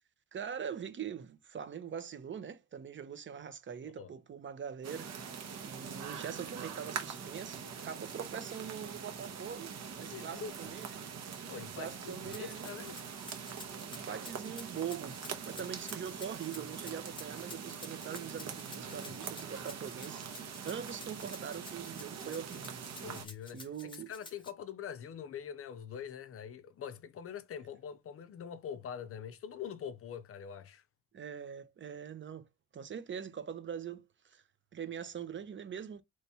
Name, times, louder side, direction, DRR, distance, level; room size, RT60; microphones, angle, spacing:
voice 1, 0.3-5.1 5.6-11.1 11.8-12.8 14.1-22.8 23.5-24.1 31.1-32.5 32.7-34.4 34.7-36.0, right 8 dB, 40° right, 0.6 m, -43 dB
sound 1, 4.8-23.3, right 6 dB, 60° right, 1.0 m, -43 dB
voice 2, 10.1-10.8 11.4-13.0 18.8-19.1 23.0-30.8, left 8 dB, 50° left, 0.5 m, -44 dB
Rattle (instrument), 12.2-24.5, left 2 dB, 15° left, 0.9 m, -51 dB
3.3 x 3.1 x 2.7 m
cardioid pair, 90°, 30 cm